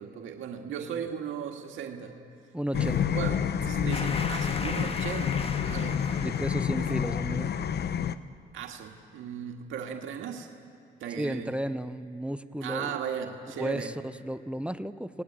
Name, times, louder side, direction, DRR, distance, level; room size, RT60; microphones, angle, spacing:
voice 1, 0.0-2.2 2.7-6.1 6.8-6.9 8.5-10.5 11.0-11.5 12.6-13.9, right 8 dB, 85° right, 2 dB, 1.8 m, -37 dB
voice 2, 0.6-1.0 2.5-3.2 5.7-7.5 11.2-13.0 13.6-15.2, right 1 dB, 5° right, 13 dB, 0.7 m, -34 dB
sound 1, 2.7-8.1, left 8 dB, 55° left, 0.9 m, -29 dB
sound 2, 3.9-6.8, left 3 dB, 30° left, 1.5 m, -38 dB
29.0 x 19.5 x 8.8 m, 2.4 s
cardioid pair, 90°, 20 cm